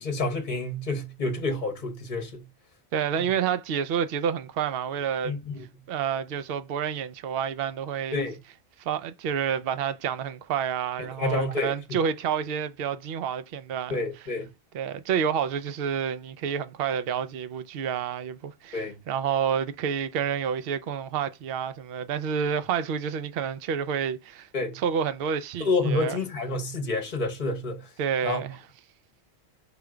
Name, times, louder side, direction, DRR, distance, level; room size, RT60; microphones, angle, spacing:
voice 1, 0.0-2.5 3.2-3.3 5.2-5.7 8.1-8.4 11.0-11.7 13.9-14.5 18.7-19.0 24.5-24.8 25.6-27.9 28.2-28.4, left 2 dB, 45° left, 1.0 m, -29 dB
voice 2, 2.9-5.4 5.9-8.2 8.8-14.0 14.7-24.5 24.7-26.2 28.0-28.6, right 8 dB, 65° right, 0.7 m, -29 dB
5.0 x 2.2 x 4.8 m
omnidirectional pair, 1.1 m